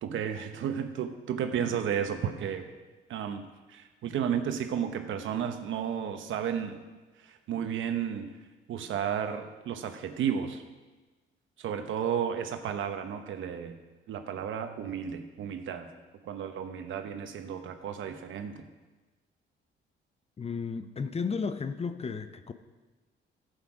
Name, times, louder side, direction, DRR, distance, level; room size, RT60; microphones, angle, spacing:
voice 1, 0.0-2.7 3.1-3.4 3.7-6.8 7.2-8.3 8.7-10.6 11.6-13.8 14.1-15.9 16.2-18.6, right 8 dB, 75° right, 7 dB, 1.0 m, -33 dB
voice 2, 20.4-22.5, left 5 dB, 30° left, 10 dB, 0.7 m, -33 dB
12.0 x 8.1 x 4.9 m, 1.2 s
cardioid pair, 90°, 20 cm